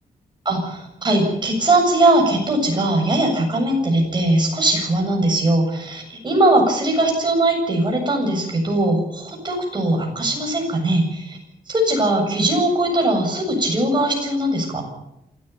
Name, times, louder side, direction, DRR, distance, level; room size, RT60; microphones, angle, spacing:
voice 1, 0.4-11.4 11.7-14.8, right 1 dB, 30° right, 1 dB, 7.8 m, -20 dB
27.5 x 14.0 x 7.1 m, 0.83 s
wide cardioid pair, 160°, 16 cm